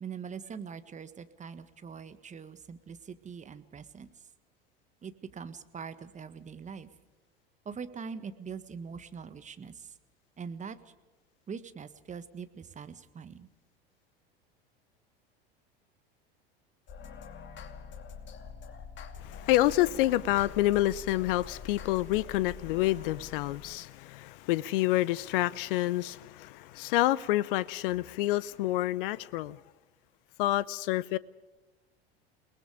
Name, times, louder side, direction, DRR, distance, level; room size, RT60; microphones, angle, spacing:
voice 1, 0.0-4.1 5.0-6.9 7.6-9.9 10.4-10.8 11.5-13.5, right 6 dB, 25° right, 11 dB, 1.6 m, -42 dB
sound 1, 16.9-23.9, left 6 dB, 40° left, 2.7 m, -45 dB
voice 2, 19.2-29.6 30.4-31.2, left 16 dB, 60° left, 21 dB, 0.7 m, -28 dB
29.0 x 20.0 x 5.0 m, 1.2 s
figure-of-eight pair, 75°, 30 cm